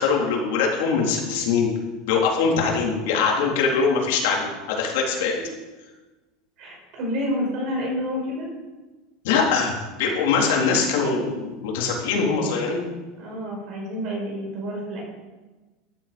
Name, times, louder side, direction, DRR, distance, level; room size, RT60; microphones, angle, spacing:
voice 1, 0.0-1.7 2.1-5.4 9.2-9.7 10.0-12.8, left 5 dB, 70° left, -1 dB, 3.8 m, -22 dB
voice 2, 6.6-8.5 13.2-15.0, equal, 40° right, -1 dB, 6.2 m, -29 dB
15.0 x 11.5 x 5.4 m, 1.2 s
supercardioid pair, 175°, 0 cm